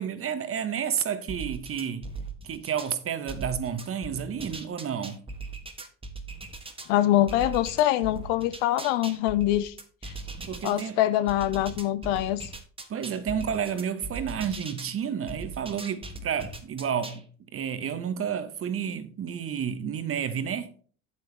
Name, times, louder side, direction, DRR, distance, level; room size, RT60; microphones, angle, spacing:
voice 1, 0.0-2.1 2.4-5.2 10.5-11.0 12.9-17.2 17.5-20.7, right 8 dB, 30° right, 1.0 m, -31 dB
sound 1, 1.3-2.9 3.3-6.9 7.3-10.8 11.3-14.9 15.3-17.2, right 3 dB, 10° right, 1.3 m, -39 dB
voice 2, 6.9-9.7 10.1-10.2 10.6-12.5, left 13 dB, 60° left, 0.7 m, -24 dB
8.3 x 8.1 x 3.3 m
figure-of-eight pair, 70°, 44 cm